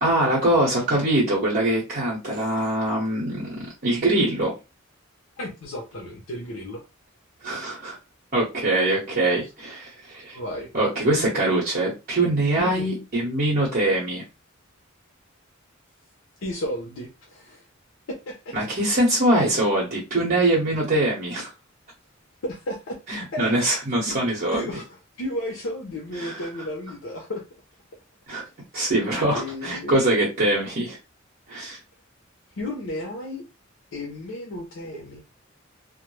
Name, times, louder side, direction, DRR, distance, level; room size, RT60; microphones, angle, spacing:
voice 1, 0.0-4.5 7.4-8.0 8.3-10.4 10.7-14.2 18.5-21.5 23.1-24.7 26.2-26.4 28.3-28.4 28.7-31.0 31.5-31.8, right 1 dB, 50° right, 0.9 m, -23 dB
voice 2, 5.4-6.8 10.3-10.7 12.6-12.9 16.4-17.6 18.1-18.6 22.4-23.5 24.0-24.2 24.5-27.4 29.3-30.1 32.6-33.4 33.9-35.2, left 1 dB, 80° left, 0.6 m, -33 dB
2.1 x 2.1 x 3.0 m
head